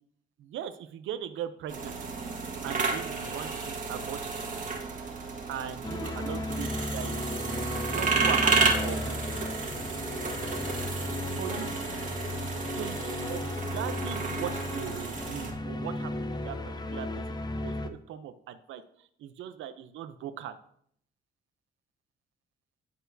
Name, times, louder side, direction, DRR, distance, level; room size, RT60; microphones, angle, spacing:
voice 1, 0.4-2.0 2.6-4.5 5.5-7.2 7.9-9.2 11.3-11.8 12.5-20.6, right 10 dB, 75° right, 11 dB, 0.6 m, -39 dB
sound 1, 1.7-15.5, right 4 dB, 40° right, 1.7 m, -32 dB
sound 2, 5.8-17.9, left 1 dB, 20° left, 0.6 m, -35 dB
11.0 x 4.4 x 2.7 m, 0.65 s
cardioid pair, 90°, 20 cm